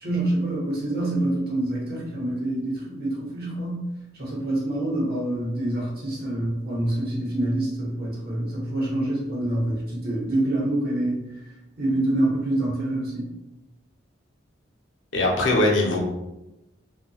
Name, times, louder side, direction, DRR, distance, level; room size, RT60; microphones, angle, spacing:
voice 1, 0.0-3.8 4.1-11.2 11.8-13.3, right 1 dB, 55° right, -4 dB, 0.9 m, -26 dB
voice 2, 15.1-16.0, left 2 dB, 85° left, 0 dB, 0.6 m, -21 dB
2.6 x 2.3 x 2.8 m, 0.94 s
head